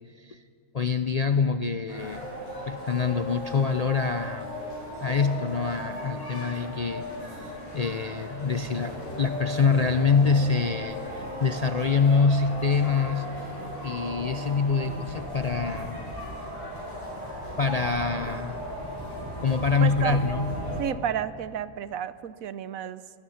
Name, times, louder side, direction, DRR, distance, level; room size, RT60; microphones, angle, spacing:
voice 1, 0.7-2.3 2.7-4.5 5.0-7.0 7.3-13.4 13.8-16.0 17.6-18.6 19.4-20.5, left 5 dB, 50° left, 9 dB, 0.4 m, -25 dB
sound 1, 1.9-20.8, equal, 15° left, 7.5 m, -36 dB
voice 2, 19.8-20.2 20.8-23.0, right 9 dB, 80° right, 14 dB, 1.2 m, -31 dB
23.0 x 19.5 x 5.8 m, 2.2 s
omnidirectional pair, 1.4 m